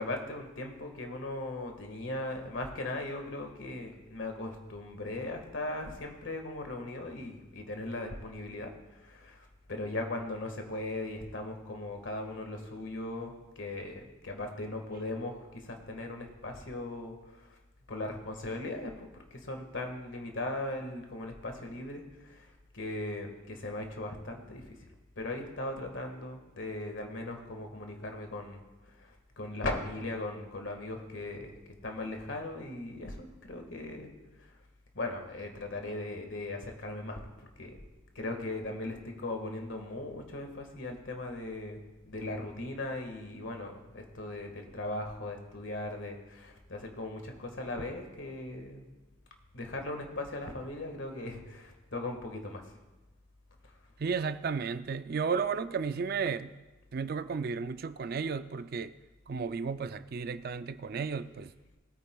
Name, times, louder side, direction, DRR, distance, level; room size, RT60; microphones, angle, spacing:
voice 1, 0.0-17.6 17.9-19.1 19.3-24.8 25.1-28.6 29.0-31.6 31.8-34.1 34.9-37.2 37.6-37.8 38.1-41.8 42.0-48.9 49.5-52.7, left 2 dB, 70° left, 4 dB, 1.7 m, -38 dB
voice 2, 54.0-56.5 56.9-58.9 59.3-61.5, right 5 dB, 50° right, 12 dB, 0.4 m, -33 dB
20.0 x 9.2 x 2.3 m, 1.1 s
head